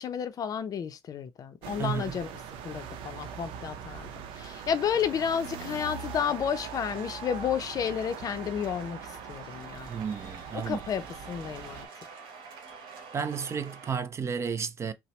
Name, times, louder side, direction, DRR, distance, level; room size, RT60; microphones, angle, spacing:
voice 1, 0.0-2.3 2.6-9.9 10.5-11.9, left 8 dB, 40° left, 0.5 m, -31 dB
sound 1, 1.6-11.9, right 7 dB, 85° right, 0.6 m, -42 dB
voice 2, 1.8-2.2 9.9-10.8 13.1-14.9, right 6 dB, 30° right, 0.4 m, -32 dB
sound 2, 2.6-14.0, right 4 dB, 60° right, 1.4 m, -47 dB
5.6 x 2.0 x 3.1 m
cardioid pair, 125°, 9 cm